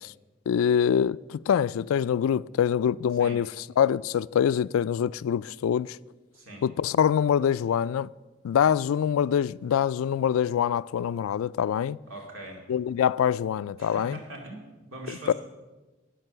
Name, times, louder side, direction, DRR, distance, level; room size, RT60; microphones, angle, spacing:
voice 1, 0.5-6.0 6.6-8.1 8.4-12.0 12.7-14.2 15.3-15.4, left 8 dB, 90° left, 0.3 m, -24 dB
voice 2, 12.1-12.6 13.8-15.3, right 2 dB, 85° right, 2.4 m, -42 dB
12.0 x 9.0 x 6.7 m
head